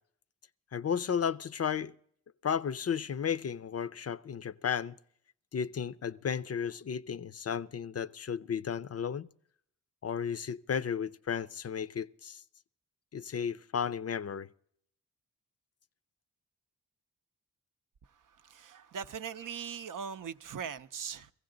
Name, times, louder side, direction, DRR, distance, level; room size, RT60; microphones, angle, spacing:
voice 1, 0.7-1.9 2.4-5.0 5.5-9.3 10.0-12.4 13.1-14.5, left 7 dB, 45° left, 0.4 m, -33 dB
voice 2, 18.4-21.3, right 7 dB, 60° right, 0.6 m, -40 dB
16.5 x 15.5 x 3.8 m
cardioid pair, 45°, 35 cm